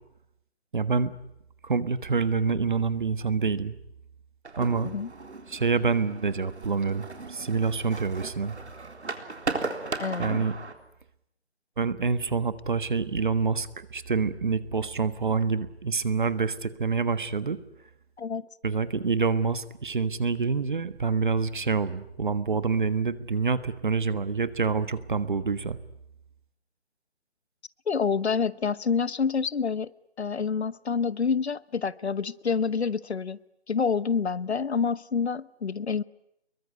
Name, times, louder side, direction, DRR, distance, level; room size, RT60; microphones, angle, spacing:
voice 1, 0.7-1.1 1.6-3.7 4.6-4.9 5.5-8.5 10.2-10.5 11.8-17.6 18.6-25.8, right 5 dB, 45° right, 14 dB, 1.4 m, -27 dB
sound 1, 4.5-10.7, right 3 dB, 80° right, 3.9 m, -37 dB
voice 2, 10.0-10.5 18.2-18.4 27.9-29.9 30.2-33.4 33.7-36.0, left 5 dB, 70° left, 19 dB, 1.0 m, -27 dB
26.0 x 22.5 x 9.5 m, 0.79 s
hypercardioid pair, 170°, 33 cm